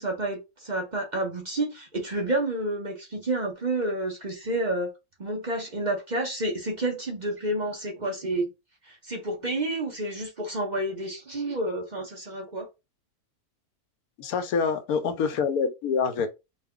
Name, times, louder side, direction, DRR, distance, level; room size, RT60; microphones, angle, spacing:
voice 1, 0.0-4.9 5.2-8.5 8.8-12.7, right 1 dB, 35° right, 0.8 m, -29 dB
voice 2, 14.2-16.3, left 5 dB, 80° left, 1.1 m, -26 dB
4.5 x 2.2 x 3.6 m
omnidirectional pair, 1.6 m